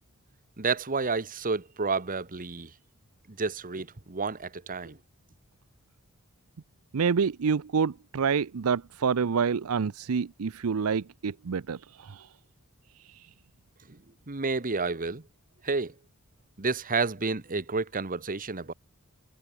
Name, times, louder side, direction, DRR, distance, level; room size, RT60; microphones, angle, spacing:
voice 1, 0.6-2.7 3.3-5.0 13.9-15.2 15.6-15.9 16.6-18.7, right 4 dB, 40° right, 1.3 m, -30 dB
voice 2, 6.9-12.2, right 6 dB, 75° right, 0.5 m, -27 dB
head